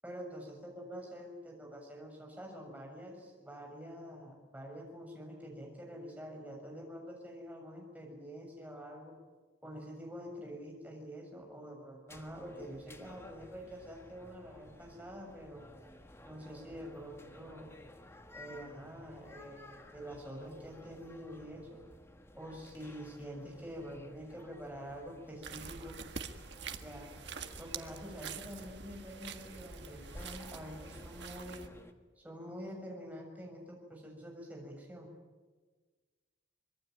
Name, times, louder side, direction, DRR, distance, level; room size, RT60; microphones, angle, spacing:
voice 1, 0.0-9.1 9.6-15.6 16.2-17.7 18.3-21.8 22.4-25.9 26.8-27.1 27.6-31.7 32.2-35.1, equal, 10° right, 0 dB, 6.9 m, -46 dB
sound 1, 12.1-31.9, left 1 dB, 15° left, 1.5 m, -55 dB
sound 2, 25.4-31.7, right 5 dB, 65° right, 1.7 m, -46 dB
25.0 x 22.5 x 9.3 m, 1.4 s
head